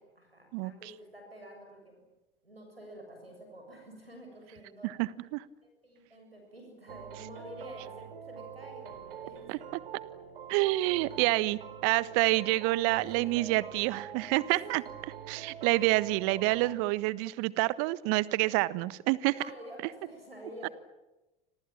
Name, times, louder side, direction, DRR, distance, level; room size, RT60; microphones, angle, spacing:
voice 1, 0.0-2.0 2.4-4.9 5.6-9.5 10.6-11.4 12.1-13.5 15.2-16.1 19.3-20.7, equal, 90° right, 3 dB, 7.4 m, -49 dB
voice 2, 4.8-5.4 9.5-9.6 10.5-14.8 15.3-19.3 20.6-20.7, right 20 dB, 50° right, 17 dB, 1.4 m, -28 dB
sound 1, 6.9-16.8, right 8 dB, 70° right, 3.8 m, -45 dB
29.5 x 26.5 x 7.5 m, 1.0 s
figure-of-eight pair, 75°, 29 cm